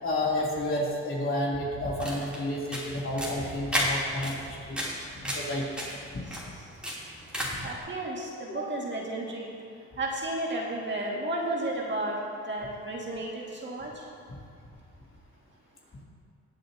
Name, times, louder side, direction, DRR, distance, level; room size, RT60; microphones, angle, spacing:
voice 1, 0.0-4.8 5.2-5.6 8.6-8.7, left 1 dB, 45° left, -4 dB, 3.0 m, -30 dB
sound 1, 1.8-7.7, equal, 5° right, 3.0 m, -34 dB
voice 2, 7.6-9.5 10.0-12.2 12.5-13.9, right 1 dB, 40° right, -2 dB, 1.9 m, -32 dB
20.0 x 7.7 x 2.8 m, 2.3 s
cardioid pair, 90°, 30 cm